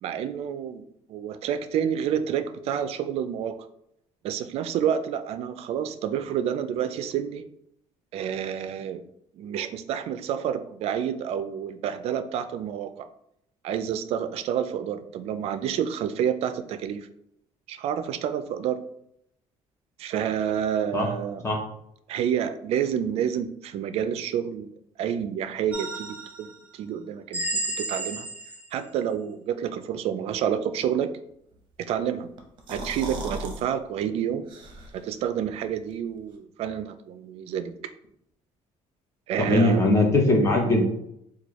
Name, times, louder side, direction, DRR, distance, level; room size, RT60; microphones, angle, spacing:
voice 1, 0.0-0.8 1.1-3.5 4.2-7.4 8.1-9.0 9.3-12.9 13.6-17.1 17.7-18.8 20.0-21.4 22.1-24.7 25.0-28.3 28.7-31.1 31.8-32.3 32.7-34.5 34.9-37.7 39.3-39.8, right 9 dB, 60° right, 9 dB, 0.4 m, -29 dB
sound 1, 25.7-26.5 27.3-28.8, right 2 dB, 15° right, 0.8 m, -32 dB
sound 2, 32.4-33.6 34.0-34.1 34.5-35.1, right 1 dB, 45° right, 0.7 m, -36 dB
voice 2, 39.4-40.8, left 2 dB, 25° left, 0 dB, 0.9 m, -20 dB
4.4 x 2.3 x 3.0 m, 0.75 s
cardioid pair, 140°, 12 cm